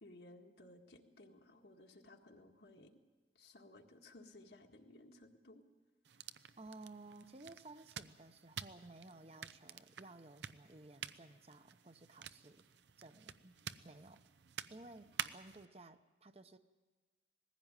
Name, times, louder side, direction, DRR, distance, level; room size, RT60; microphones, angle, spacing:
voice 1, 0.0-2.9 3.4-5.6, left 1 dB, 75° left, 3 dB, 1.8 m, -59 dB
sound 1, 6.0-15.7, right 8 dB, 90° right, 0.7 m, -50 dB
voice 2, 6.6-12.6 13.0-13.6 13.8-14.2 14.7-16.6, right 2 dB, 35° right, 9 dB, 0.8 m, -56 dB
20.0 x 15.5 x 9.0 m, 1.3 s
head